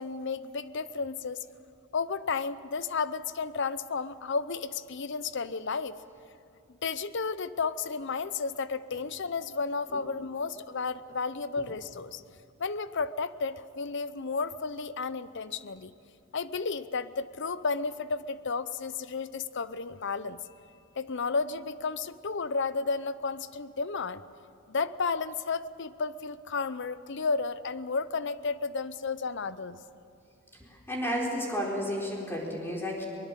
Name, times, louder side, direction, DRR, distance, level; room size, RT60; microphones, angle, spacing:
voice 1, 0.0-1.4 1.9-6.0 6.8-12.2 12.6-15.9 16.3-20.4 21.0-24.2 24.7-29.8, left 4 dB, 60° left, 15 dB, 0.7 m, -32 dB
voice 2, 30.7-33.1, equal, 10° left, -2 dB, 4.3 m, -32 dB
23.5 x 20.5 x 7.5 m, 2.5 s
head